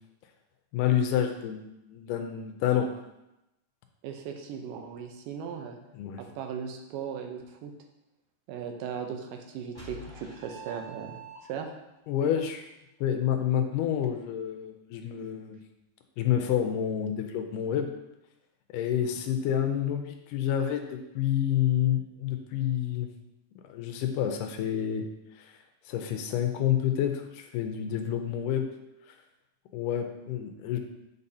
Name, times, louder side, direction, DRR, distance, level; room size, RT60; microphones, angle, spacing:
voice 1, 0.7-1.6 1.9-2.9 5.9-6.2 12.1-12.7 13.0-15.6 16.2-17.9 18.7-23.1 23.7-25.0 25.4-25.5 25.9-28.6 29.7-30.8, left 10 dB, 80° left, 5 dB, 2.1 m, -28 dB
voice 2, 4.0-5.8 6.2-7.7 8.5-11.7, right 7 dB, 80° right, 4 dB, 2.4 m, -38 dB
sound 1, 9.7-11.8, right 3 dB, 20° right, 1.5 m, -45 dB
8.3 x 5.4 x 2.7 m, 0.93 s
omnidirectional pair, 3.8 m